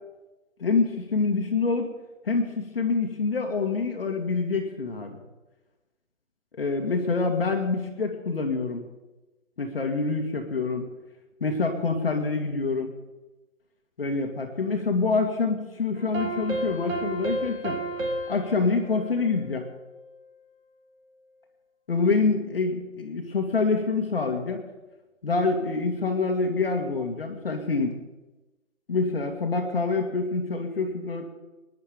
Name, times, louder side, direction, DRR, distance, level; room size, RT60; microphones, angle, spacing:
voice 1, 0.6-1.9 2.2-5.2 6.6-8.8 9.6-10.9 11.4-12.9 14.0-17.8 18.3-19.7 21.9-24.6 25.2-27.9 28.9-31.3, left 4 dB, 45° left, 3 dB, 2.0 m, -26 dB
sound 1, 16.0-20.2, right 1 dB, 80° right, 3.0 m, -33 dB
20.5 x 10.5 x 5.1 m, 1.1 s
hypercardioid pair, 170°, 40 cm